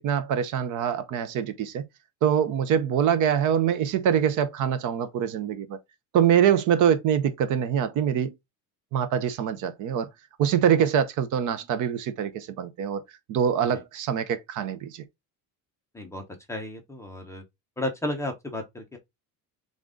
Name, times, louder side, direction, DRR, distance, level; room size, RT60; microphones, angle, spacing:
voice 1, 0.0-1.8 2.2-5.8 6.1-8.3 8.9-10.1 10.4-13.0 13.3-15.0, right 8 dB, 50° right, 0.7 m, -24 dB
voice 2, 16.5-17.4 17.8-19.0, left 1 dB, 5° left, 0.7 m, -33 dB
3.8 x 3.7 x 3.6 m
cardioid pair, 175°, 39 cm